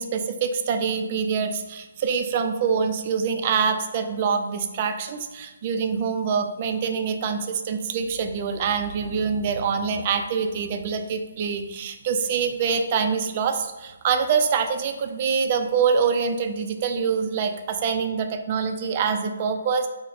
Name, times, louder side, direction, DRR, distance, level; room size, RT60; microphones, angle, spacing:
voice 1, 0.0-19.9, right 6 dB, 35° right, 6 dB, 0.3 m, -25 dB
3.9 x 2.0 x 4.0 m, 1.1 s
hypercardioid pair, 165°, 0 cm